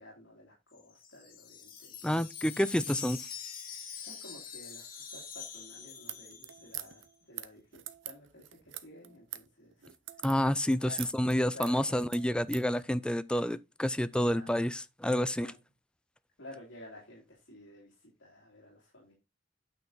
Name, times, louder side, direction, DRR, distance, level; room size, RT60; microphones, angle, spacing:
voice 1, 0.0-2.0 4.0-9.7 10.8-11.0 11.5-12.1 14.2-14.7 15.2-15.5 16.4-19.1, left 1 dB, 75° left, 2.8 m, -52 dB
Wind chime, 0.8-7.0, left 7 dB, 50° left, 1.8 m, -45 dB
voice 2, 2.0-3.2 10.2-15.5, equal, 5° left, 0.4 m, -29 dB
sound 1, 6.0-12.7, right 13 dB, 90° right, 0.8 m, -44 dB
9.0 x 5.7 x 3.9 m
head